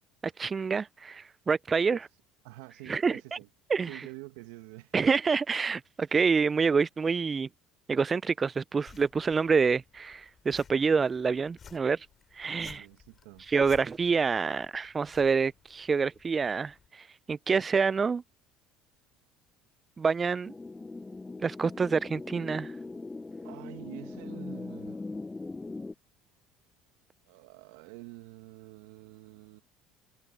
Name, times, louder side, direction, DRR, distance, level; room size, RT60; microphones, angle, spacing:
voice 1, 0.2-2.0 2.9-3.4 3.7-4.0 4.9-7.5 7.9-12.1 12.3-12.9 13.4-18.2 20.0-20.5 21.4-22.7, right 5 dB, 30° right, 0.4 m, -27 dB
voice 2, 2.4-3.5 3.9-5.1 12.6-13.5 23.4-25.0 27.3-29.6, right 22 dB, 80° right, 1.6 m, -47 dB
sound 1, 8.9-16.9, left 7 dB, 40° left, 3.4 m, -56 dB
sound 2, 20.5-25.9, left 3 dB, 15° left, 0.7 m, -40 dB
hypercardioid pair, 75°, 0 cm